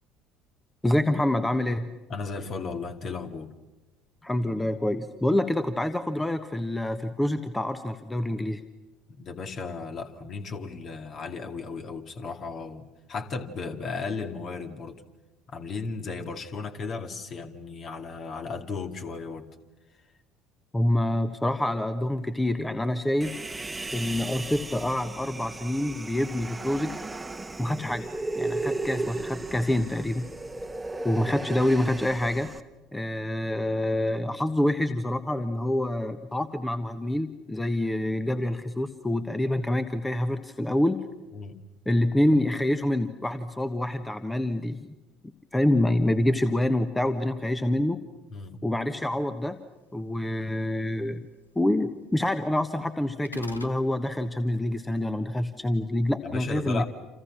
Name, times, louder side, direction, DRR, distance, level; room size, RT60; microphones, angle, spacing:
voice 1, 0.8-1.9 4.2-8.6 20.7-23.4 23.9-26.9 27.6-28.0 28.3-30.3 31.0-32.5 32.9-41.0 41.9-44.8 45.5-48.0 48.6-49.6 49.9-51.2 51.5-56.8, left 1 dB, 10° left, 9 dB, 1.3 m, -26 dB
voice 2, 2.1-3.5 9.1-15.0 15.5-19.5 41.3-41.6 48.3-48.5 56.2-56.8, left 4 dB, 40° left, 6 dB, 2.2 m, -35 dB
Human voice, 23.2-32.6, right 2 dB, 15° right, 1.3 m, -35 dB
sound 1, 53.2-53.8, left 2 dB, 85° left, 1.1 m, -40 dB
29.0 x 28.0 x 6.2 m, 1.1 s
figure-of-eight pair, 60°, 0 cm